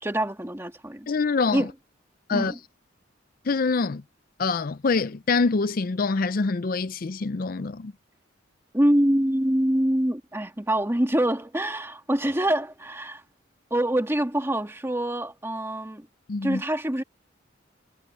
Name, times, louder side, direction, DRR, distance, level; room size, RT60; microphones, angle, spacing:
voice 1, 0.0-1.1 1.5-1.7 2.3-2.6 8.7-13.2 13.7-16.1 16.4-17.0, right 1 dB, 15° right, 1.8 m, -25 dB
voice 2, 1.1-1.6 2.3-2.5 3.5-4.0 4.4-7.9 16.3-16.6, left 4 dB, 45° left, 0.5 m, -25 dB
head